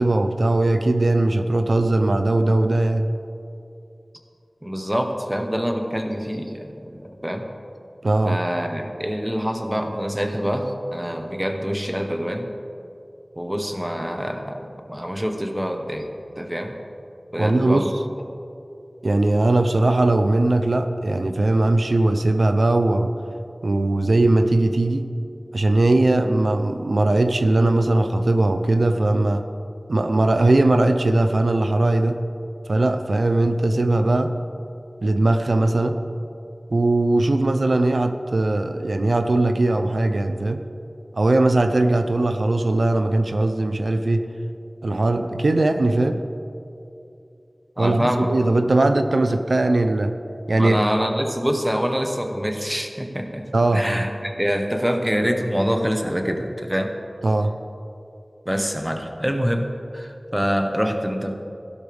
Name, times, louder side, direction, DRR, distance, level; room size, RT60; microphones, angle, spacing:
voice 1, 0.0-3.1 8.0-8.4 17.4-17.9 19.0-23.1 23.6-25.0 25.5-29.4 29.9-32.2 32.7-34.3 35.0-36.0 36.7-40.6 41.1-44.2 44.8-46.2 47.8-50.1 50.5-50.8 53.5-53.8 57.2-57.5, right 2 dB, 85° right, 7 dB, 0.6 m, -19 dB
voice 2, 4.6-7.4 8.3-12.5 13.4-14.6 14.9-16.1 16.4-16.8 17.3-17.9 47.8-48.3 50.6-53.4 53.7-56.9 58.4-59.6 59.9-61.3, equal, 10° right, 4 dB, 1.2 m, -25 dB
15.5 x 12.0 x 3.5 m, 2.6 s
wide cardioid pair, 55°, 0 cm